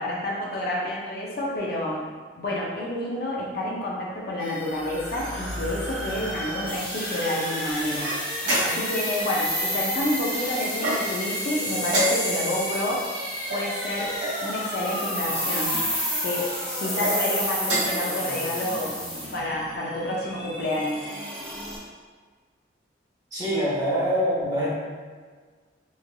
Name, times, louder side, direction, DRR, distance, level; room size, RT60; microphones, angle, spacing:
voice 1, 0.0-2.1 2.4-8.1 8.6-13.0 13.5-14.1 14.4-15.8 16.2-16.5 16.8-18.9 19.3-21.1, left 1 dB, 55° left, -4 dB, 0.5 m, -29 dB
sound 1, 4.4-21.8, equal, 5° left, 0.5 m, -32 dB
sound 2, 6.9-20.6, equal, 35° left, 1.2 m, -35 dB
sound 3, 8.0-9.0 10.7-11.3 11.9-12.6 13.5-14.4 15.3-15.9 16.8-17.2 17.6-18.1, right 1 dB, 80° right, 1.0 m, -28 dB
voice 2, 23.3-24.8, equal, 20° right, -9 dB, 0.9 m, -24 dB
3.1 x 2.4 x 2.2 m, 1.5 s
head